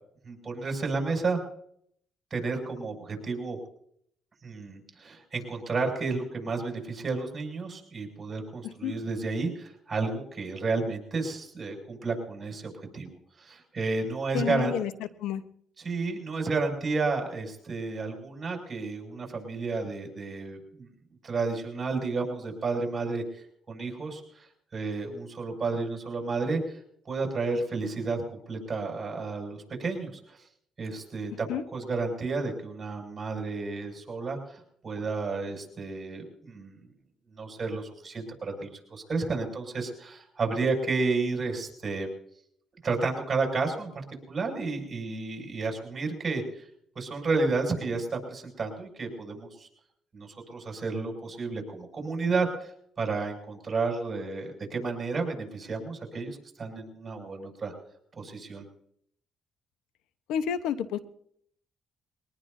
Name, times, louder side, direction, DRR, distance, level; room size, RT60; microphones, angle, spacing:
voice 1, 0.2-1.4 2.3-3.6 4.4-14.7 15.8-20.9 21.2-23.2 23.7-24.5 24.7-26.8 27.0-30.4 30.8-36.8 37.3-42.1 42.8-46.7 46.9-49.7 50.1-52.7 53.0-57.7 58.2-58.6, right 3 dB, 35° right, 2 dB, 6.7 m, -31 dB
voice 2, 8.6-8.9 14.3-14.9 15.2-15.4 31.5-31.6 60.3-61.0, left 9 dB, 90° left, 11 dB, 1.0 m, -30 dB
22.5 x 19.0 x 2.7 m, 0.66 s
cardioid pair, 80°, 0 cm